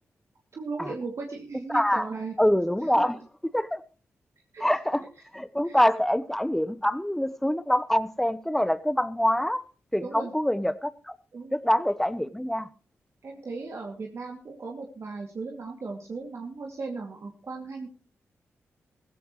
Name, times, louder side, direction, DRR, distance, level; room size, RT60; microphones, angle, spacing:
voice 1, 0.5-2.3 2.8-2.9 4.5-4.6 5.6-5.8 10.0-10.3 11.3-11.5 13.2-17.9, right 4 dB, 60° right, 0 dB, 2.6 m, -37 dB
voice 2, 1.7-2.1 2.4-3.2 3.5-3.8 4.6-5.0 5.3-9.6 9.9-11.1 11.5-12.7, equal, 5° left, 14 dB, 1.0 m, -25 dB
16.0 x 15.5 x 3.2 m, 0.36 s
cardioid pair, 55°, 5 cm